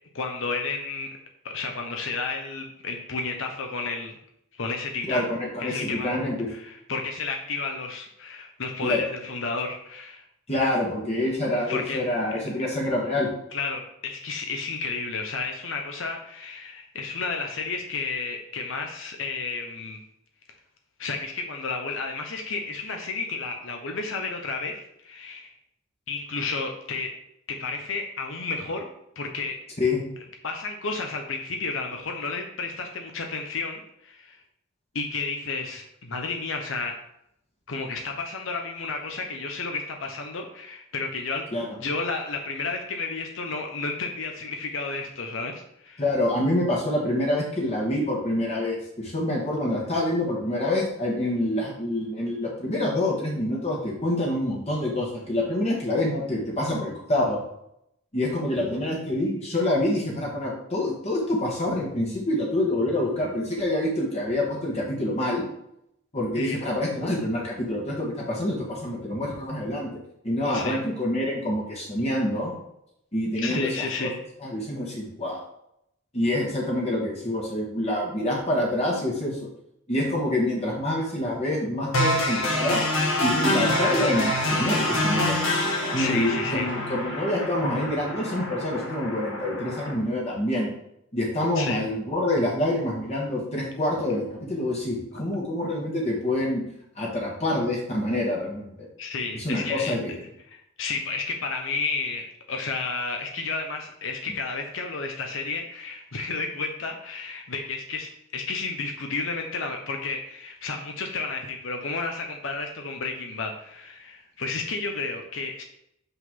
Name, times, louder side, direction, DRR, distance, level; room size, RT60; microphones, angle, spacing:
voice 1, 0.1-1.1 1.4-4.1 4.5-5.3 5.6-6.1 6.5-10.2 11.7-12.0 13.5-20.0 21.0-25.5 26.1-27.1 27.6-28.9 29.2-29.6 30.4-34.4 34.9-36.9 37.7-41.5 41.8-46.0 66.4-66.6 70.4-70.8 73.4-74.2 86.0-86.7 91.6-91.8 99.0-99.9 100.5-115.6, left 4 dB, 70° left, 3 dB, 0.8 m, -32 dB
voice 2, 5.1-6.5 8.8-9.0 10.5-13.3 29.8-30.0 41.5-41.7 46.0-57.4 58.1-65.4 66.1-69.9 70.2-72.6 73.1-73.7 74.0-74.1 74.4-75.4 76.1-79.4 79.9-82.8 83.2-85.4 85.9-90.7 91.1-96.6 96.9-98.9 99.3-100.2, left 1 dB, 30° left, -3 dB, 1.3 m, -26 dB
sound 1, 81.9-89.9, left 1 dB, 90° left, 1.6 m, -26 dB
6.0 x 5.6 x 3.7 m, 0.77 s
head